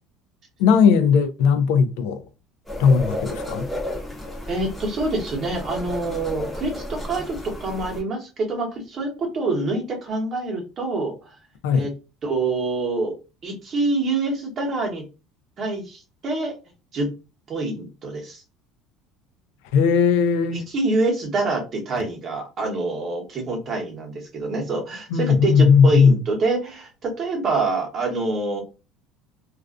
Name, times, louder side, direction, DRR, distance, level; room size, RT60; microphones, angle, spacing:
voice 1, 0.6-2.2 2.8-3.7 11.6-11.9 19.7-20.6 25.1-26.2, left 6 dB, 85° left, 0.3 m, -17 dB
sound 1, 2.7-8.0, left 1 dB, 5° left, 0.7 m, -33 dB
voice 2, 4.5-11.1 11.7-11.9 12.2-13.1 13.4-15.0 15.6-16.5 16.9-17.1 17.5-18.4 20.5-28.6, right 2 dB, 35° right, 0.9 m, -26 dB
2.3 x 2.2 x 2.4 m
cardioid pair, 145°, 0 cm